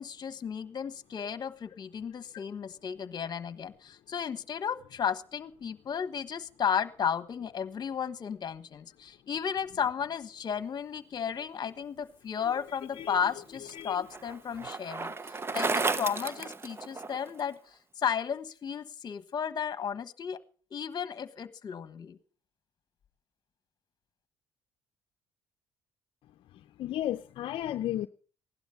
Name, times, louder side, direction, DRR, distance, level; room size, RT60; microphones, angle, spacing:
voice 1, 0.0-20.4 20.7-22.2, left 7 dB, 45° left, 1.3 m, -34 dB
voice 2, 12.7-13.2 13.7-14.0 26.5-28.1, left 12 dB, 65° left, 0.6 m, -34 dB
Bicycle, 13.0-17.4, right 4 dB, 25° right, 0.8 m, -33 dB
16.5 x 11.5 x 5.7 m
cardioid pair, 85°, 10 cm